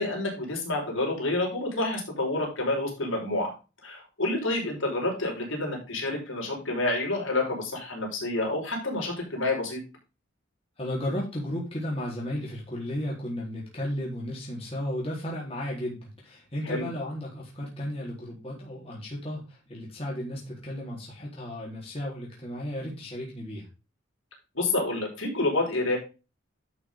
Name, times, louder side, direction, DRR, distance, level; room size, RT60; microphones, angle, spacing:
voice 1, 0.0-3.5 3.8-9.8 16.7-16.9 24.5-26.0, left 2 dB, 75° left, -1 dB, 5.4 m, -28 dB
voice 2, 10.8-23.7, left 1 dB, 30° left, -4 dB, 4.0 m, -34 dB
12.0 x 6.1 x 3.7 m, 0.30 s
head